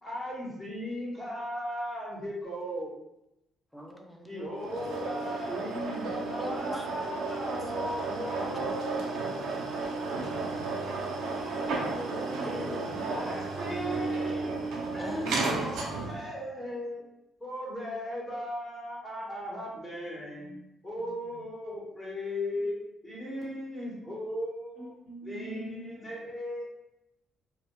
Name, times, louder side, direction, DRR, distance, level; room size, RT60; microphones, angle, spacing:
voice 1, 0.0-2.9 4.2-11.7 12.4-14.6 14.9-17.0 17.4-20.5 20.8-22.8 23.0-24.9 25.2-26.6, equal, 25° left, -6 dB, 0.9 m, -37 dB
voice 2, 3.7-4.5 6.4-6.9 7.5-7.6 8.3-8.5 11.7-12.8 15.0-15.3, equal, ahead, 1 dB, 0.5 m, -41 dB
sound 1, 4.6-16.3, right 3 dB, 80° right, 0.4 m, -33 dB
voice 3, 16.1-16.6 20.0-21.5 22.5-22.8 24.7-26.0 26.3-26.4, right 3 dB, 75° left, -6 dB, 1.2 m, -49 dB
2.2 x 2.2 x 2.9 m, 0.88 s
cardioid pair, 90°, 0 cm